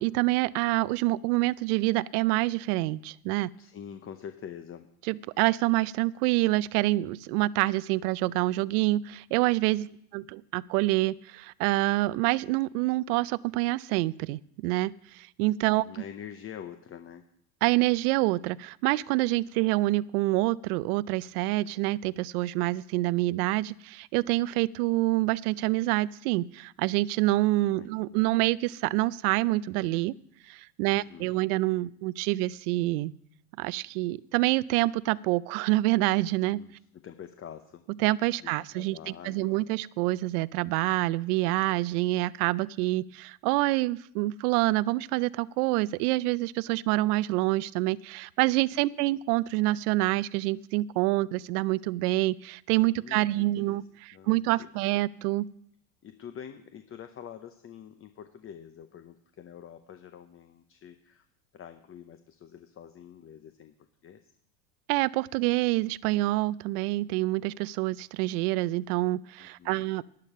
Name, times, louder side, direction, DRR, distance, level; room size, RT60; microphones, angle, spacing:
voice 1, 0.0-3.5 5.1-9.9 10.1-15.8 17.6-30.1 30.5-33.1 33.6-36.6 38.0-39.0 39.2-53.8 54.3-55.5 64.9-70.0, right 19 dB, 70° right, 21 dB, 0.6 m, -27 dB
voice 2, 3.5-4.9 5.3-5.5 9.9-10.3 15.7-17.3 27.6-28.3 30.9-31.4 36.5-37.8 38.4-39.9 48.7-49.2 53.0-54.7 56.0-61.3 61.5-64.3 69.4-69.9, left 8 dB, 30° left, 9 dB, 0.8 m, -46 dB
11.5 x 10.5 x 5.5 m, 0.71 s
supercardioid pair, 100°, 47 cm